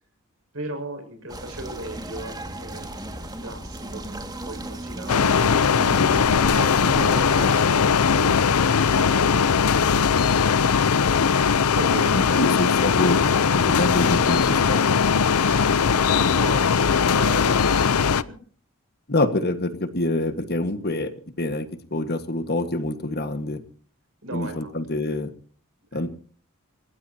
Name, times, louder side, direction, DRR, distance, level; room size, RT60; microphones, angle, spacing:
voice 1, 0.5-2.9 3.1-4.2 4.4-10.7 11.7-12.4 15.4-18.2 24.2-24.7 25.9-26.1, right 1 dB, 65° right, 5 dB, 5.8 m, -37 dB
sound 1, 1.3-7.6, right 1 dB, 20° right, 2.0 m, -35 dB
sound 2, 5.1-18.2, left 6 dB, 90° left, 0.6 m, -20 dB
voice 2, 12.1-13.2 13.5-15.0 19.1-21.1 21.4-23.6 24.3-25.3 25.9-26.1, left 1 dB, 45° left, 9 dB, 1.6 m, -26 dB
29.0 x 15.5 x 2.9 m, 0.43 s
head